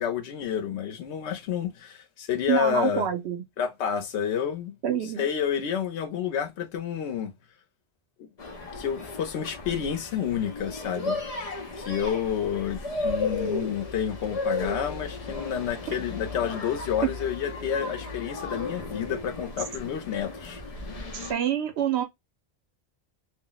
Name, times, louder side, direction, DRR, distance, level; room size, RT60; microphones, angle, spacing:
voice 1, 0.0-3.1 3.6-7.3 8.2-8.3 8.8-11.2 11.8-20.6, left 8 dB, 90° left, 0.9 m, -29 dB
voice 2, 2.5-3.4 4.8-5.3 17.0-17.1 21.1-22.0, right 10 dB, 80° right, 0.8 m, -26 dB
sound 1, 8.4-21.3, left 3 dB, 45° left, 0.6 m, -35 dB
2.4 x 2.0 x 3.8 m
omnidirectional pair, 1.1 m